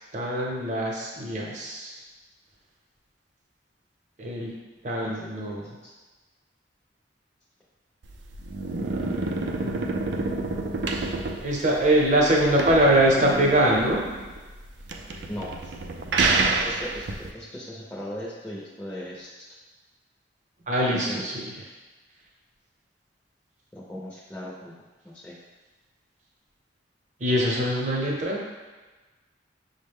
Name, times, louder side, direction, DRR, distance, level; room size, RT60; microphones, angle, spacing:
voice 1, 0.1-2.0 4.2-4.6 4.8-5.7 9.6-9.9 11.4-14.0 20.7-21.5 27.2-28.4, right 1 dB, 45° right, -2 dB, 0.8 m, -23 dB
voice 2, 5.0-5.9 15.3-15.7 16.4-19.3 20.9-21.2 23.7-24.7 25.0-25.3, equal, 10° left, -7 dB, 0.6 m, -38 dB
sound 1, 8.0-17.3, right 3 dB, 70° right, 0.4 m, -28 dB
6.1 x 2.1 x 3.5 m, 1.2 s
head